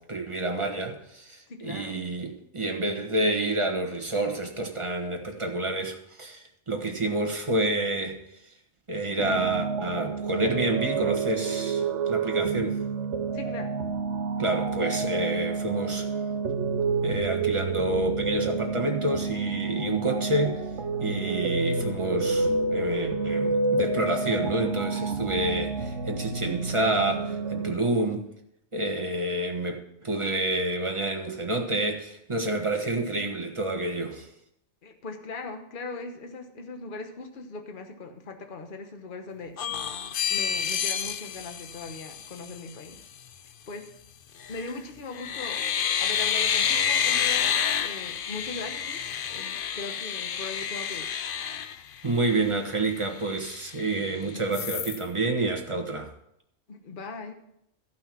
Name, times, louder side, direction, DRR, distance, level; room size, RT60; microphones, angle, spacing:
voice 1, 0.0-8.2 8.9-12.8 14.4-16.1 17.0-20.6 21.0-28.2 28.7-34.3 52.0-56.1, right 2 dB, 25° right, 3 dB, 1.4 m, -28 dB
voice 2, 1.5-2.0 13.3-13.8 34.8-39.8 40.3-43.0 43.7-43.9 44.5-45.6 46.0-49.0 49.3-51.1 56.7-57.3, left 3 dB, 40° left, 5 dB, 1.2 m, -39 dB
sound 1, 9.2-27.7, right 4 dB, 60° right, 1.2 m, -29 dB
sound 2, 39.6-42.6 44.4-44.8 45.1-52.4 52.8-52.9 53.2-54.1 54.5-55.0, left 8 dB, 60° left, 0.6 m, -29 dB
14.5 x 5.7 x 6.0 m, 0.76 s
omnidirectional pair, 1.4 m